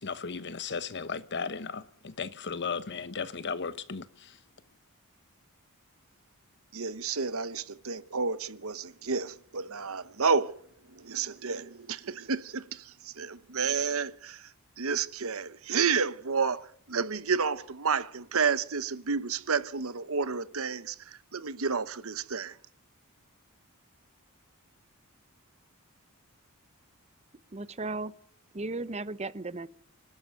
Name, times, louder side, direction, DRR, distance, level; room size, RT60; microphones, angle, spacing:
voice 1, 0.0-4.4, left 5 dB, 50° left, 1.1 m, -36 dB
voice 2, 6.7-10.6 10.8-22.6, right 5 dB, 65° right, 1.0 m, -31 dB
voice 3, 27.5-28.1 28.5-29.7, right 2 dB, 30° right, 0.8 m, -35 dB
26.0 x 12.0 x 8.1 m
head